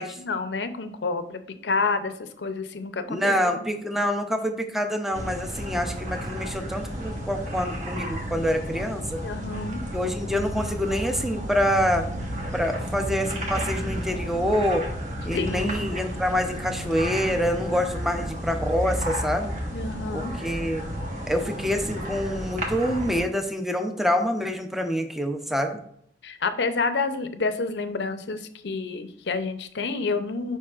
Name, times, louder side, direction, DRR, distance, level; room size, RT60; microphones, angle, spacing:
voice 1, 0.0-3.3 9.2-9.8 15.3-15.8 19.7-20.4 22.0-22.1 26.2-30.6, left 4 dB, 75° left, 9 dB, 0.6 m, -29 dB
voice 2, 3.1-9.2 9.9-12.0 12.5-14.8 15.2-19.5 20.1-20.8 21.3-25.8, equal, ahead, 5 dB, 0.6 m, -26 dB
sound 1, 5.1-23.2, equal, 45° right, 1.3 m, -32 dB
7.3 x 5.3 x 2.4 m, 0.66 s
head